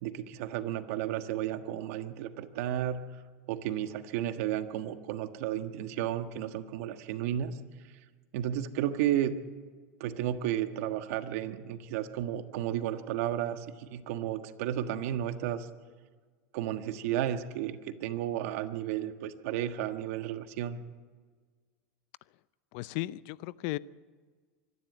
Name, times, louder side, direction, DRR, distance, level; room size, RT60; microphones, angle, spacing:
voice 1, 0.0-3.0 3.5-7.5 8.3-9.4 10.0-15.7 16.5-20.8, right 11 dB, 70° right, 8 dB, 1.5 m, -33 dB
voice 2, 22.7-23.8, left 19 dB, 65° left, 19 dB, 0.6 m, -35 dB
24.5 x 11.5 x 9.2 m, 1.5 s
supercardioid pair, 115°, 8 cm